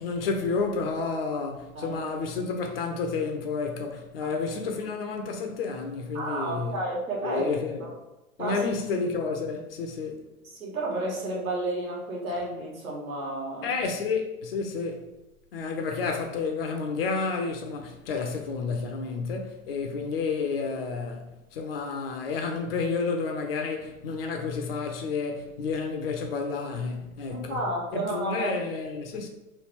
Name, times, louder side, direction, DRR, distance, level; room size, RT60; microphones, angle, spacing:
voice 1, 0.0-6.8 7.2-7.8 8.4-10.1 13.6-15.1 15.5-27.6 27.9-29.3, left 4 dB, 45° left, 0.5 m, -30 dB
voice 2, 6.1-7.5 7.8-7.9 8.4-8.6 10.6-13.7 27.3-28.5, right 1 dB, 70° right, 1.3 m, -31 dB
3.1 x 2.4 x 3.3 m
figure-of-eight pair, 100°, 43 cm